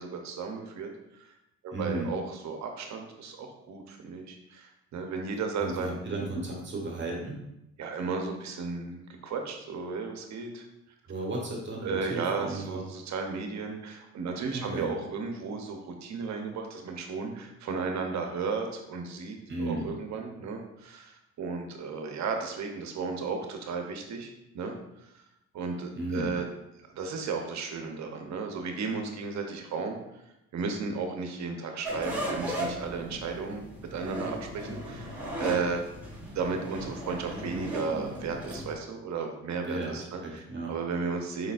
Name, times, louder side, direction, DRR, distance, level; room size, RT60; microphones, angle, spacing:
voice 1, 0.0-1.3 1.6-5.9 7.8-10.6 11.8-25.1 25.5-26.4 26.9-30.0 30.5-33.6 33.9-35.8 36.2-41.5, right 4 dB, 65° right, 4 dB, 0.8 m, -34 dB
voice 2, 1.7-2.1 5.6-7.4 11.0-12.8 14.5-14.9 19.5-19.9 25.9-26.3 39.6-40.7, right 2 dB, 40° right, -2 dB, 1.2 m, -34 dB
sound 1, 31.8-38.7, equal, 5° right, 1.5 m, -36 dB
4.9 x 3.9 x 2.5 m, 0.88 s
cardioid pair, 90°, 30 cm